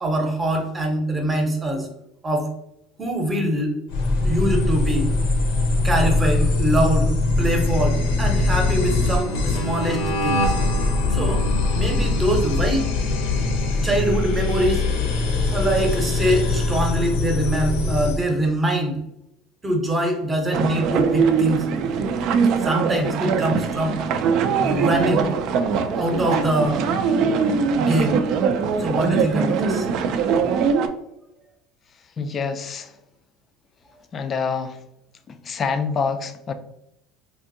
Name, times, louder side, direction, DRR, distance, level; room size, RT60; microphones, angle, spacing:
voice 1, 0.0-1.9 2.2-2.5 3.0-3.8 4.2-5.1 5.8-10.4 11.1-11.5 11.7-12.9 13.8-14.9 15.5-19.0 19.6-21.7 22.6-24.0 24.6-25.3 26.0-26.9 27.8-28.2 28.8-29.9, right 1 dB, 15° right, 2 dB, 0.7 m, -23 dB
sound 1, 3.9-18.2, left 2 dB, 85° left, 0.7 m, -22 dB
sound 2, 20.5-30.9, right 6 dB, 55° right, 0.3 m, -22 dB
voice 2, 32.2-32.9 34.1-34.8 35.3-36.5, left 5 dB, 30° left, 9 dB, 0.3 m, -26 dB
3.5 x 2.6 x 2.6 m, 0.81 s
cardioid pair, 135°, 0 cm